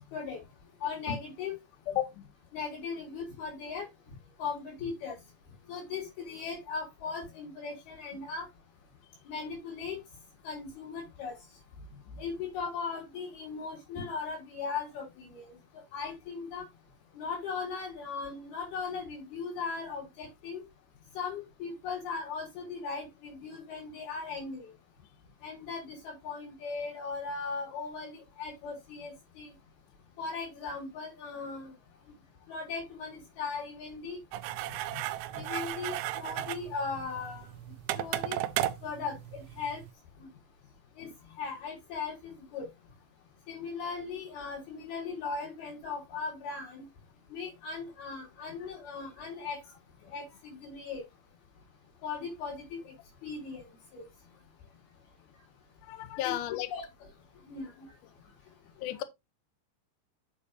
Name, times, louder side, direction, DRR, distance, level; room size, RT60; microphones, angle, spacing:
voice 1, 0.8-1.5 2.5-3.9 4.4-5.2 5.7-8.5 9.3-10.0 10.4-11.4 12.2-15.5 15.9-16.7 17.1-20.6 21.1-24.7 25.4-28.1 28.4-29.5 30.2-31.7 32.5-34.2 35.4-37.5 38.0-38.4 38.8-39.8 40.2-40.3 41.0-41.1 41.4-42.7 43.5-46.8 47.3-49.6 50.0-51.0 52.0-52.9 53.2-53.6 53.9-54.1 56.2-56.4 56.7-56.9 57.5-57.9, left 5 dB, 60° left, 6.9 m, -38 dB
voice 2, 1.9-2.3 34.9-35.0 35.4-35.5 55.9-56.7 58.8-59.0, left 13 dB, 80° left, 1.8 m, -33 dB
sound 1, 34.3-39.9, right 14 dB, 85° right, 2.8 m, -35 dB
9.7 x 6.8 x 2.7 m
omnidirectional pair, 4.9 m